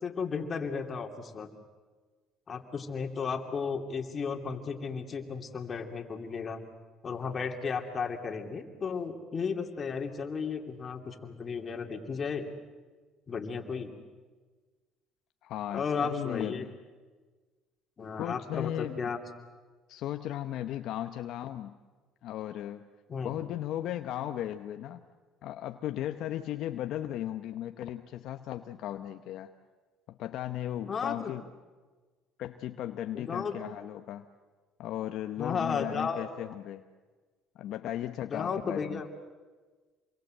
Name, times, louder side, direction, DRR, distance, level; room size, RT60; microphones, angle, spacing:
voice 1, 0.0-1.5 2.5-6.6 7.0-12.5 13.3-13.9 15.7-16.7 18.0-19.2 23.1-23.3 30.9-31.3 33.1-33.6 35.4-36.2 38.3-39.0, left 5 dB, 35° left, 3 dB, 2.9 m, -34 dB
voice 2, 15.4-16.8 18.1-19.1 19.9-21.8 22.2-22.9 23.2-25.0 25.4-29.5 30.1-31.4 32.4-34.3 34.8-36.8 37.6-39.0, left 12 dB, 65° left, 7 dB, 0.9 m, -36 dB
27.5 x 22.5 x 7.8 m, 1.4 s
cardioid pair, 100°, 0 cm